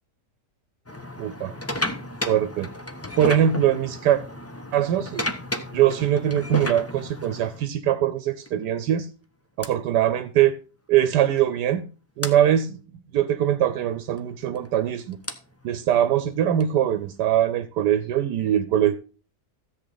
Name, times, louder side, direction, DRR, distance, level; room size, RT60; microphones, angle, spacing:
sound 1, 0.9-7.7 8.5-8.7 9.6-9.7 11.1-11.2 11.4-11.5 12.2-12.4 14.1-17.3, left 1 dB, 15° left, 0.7 m, -33 dB
voice 1, 1.2-1.5 2.3-2.7 3.2-4.2 4.7-5.3 5.7-9.1 9.6-10.6 10.9-11.8 12.2-12.8 13.1-15.2 15.6-19.0, right 10 dB, 85° right, 11 dB, 1.3 m, -22 dB
13.5 x 8.0 x 4.0 m, 0.36 s
omnidirectional pair, 1.8 m